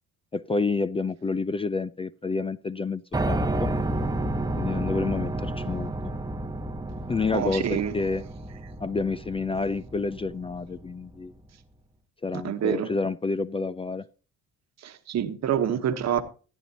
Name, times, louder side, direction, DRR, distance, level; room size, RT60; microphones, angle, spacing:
voice 1, 0.3-3.7 4.6-5.9 7.1-8.2 8.8-11.3 12.2-14.0, left 4 dB, 20° left, 0.4 m, -29 dB
Piano, 3.1-11.1, right 1 dB, 15° right, 0.9 m, -31 dB
voice 2, 7.3-7.9 12.3-12.9 14.8-16.2, right 9 dB, 60° right, 1.2 m, -27 dB
16.0 x 9.1 x 2.8 m
cardioid pair, 90°, 30 cm